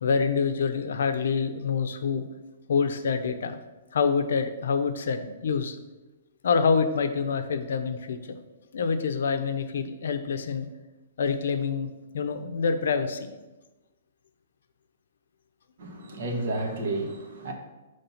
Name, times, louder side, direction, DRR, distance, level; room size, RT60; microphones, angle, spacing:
voice 1, 0.0-2.3 2.7-3.6 3.9-5.8 6.4-8.3 8.7-10.7 11.2-11.9 12.1-13.3, left 5 dB, 75° left, 8 dB, 0.6 m, -26 dB
voice 2, 15.8-17.5, right 2 dB, 60° right, 3 dB, 1.1 m, -31 dB
5.5 x 3.3 x 5.6 m, 1.1 s
hypercardioid pair, 165°, 0 cm